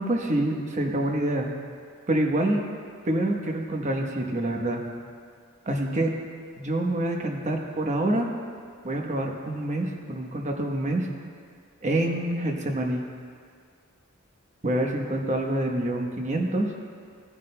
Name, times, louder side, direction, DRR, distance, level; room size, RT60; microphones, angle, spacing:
voice 1, 0.0-1.5 2.1-2.7 3.0-4.8 5.7-6.1 6.6-8.3 8.8-11.1 11.8-13.0 14.6-16.7, right 1 dB, 35° right, 2 dB, 1.0 m, -26 dB
16.5 x 9.8 x 2.2 m, 2.1 s
head